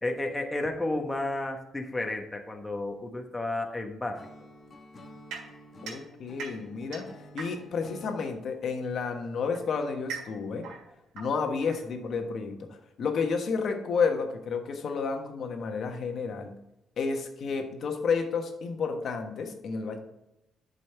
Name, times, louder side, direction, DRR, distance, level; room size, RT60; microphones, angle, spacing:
voice 1, 0.0-4.2, left 2 dB, 15° left, 3 dB, 1.1 m, -32 dB
Acoustic guitar / Strum, 4.2-8.3, equal, 40° left, 1.1 m, -50 dB
sound 1, 5.3-7.9 8.9-12.3, right 5 dB, 85° right, 1.9 m, -43 dB
voice 2, 5.8-7.1 7.3-10.7 11.1-16.5 17.0-20.0, left 5 dB, 60° left, 5 dB, 1.2 m, -31 dB
7.8 x 5.3 x 3.3 m, 0.89 s
cardioid pair, 90°, 0 cm